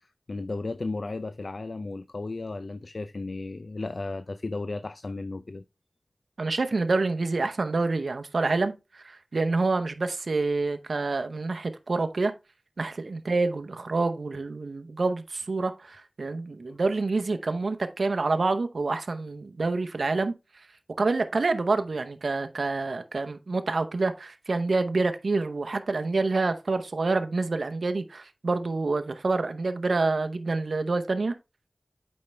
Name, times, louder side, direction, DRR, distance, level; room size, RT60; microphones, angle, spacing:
voice 1, 0.0-5.6 16.7-16.8, left 3 dB, 75° left, 0.4 m, -34 dB
voice 2, 6.4-12.3 12.8-20.3 21.0-31.3, right 3 dB, 90° right, 0.7 m, -27 dB
8.6 x 5.3 x 3.4 m
wide cardioid pair, 50°, 0 cm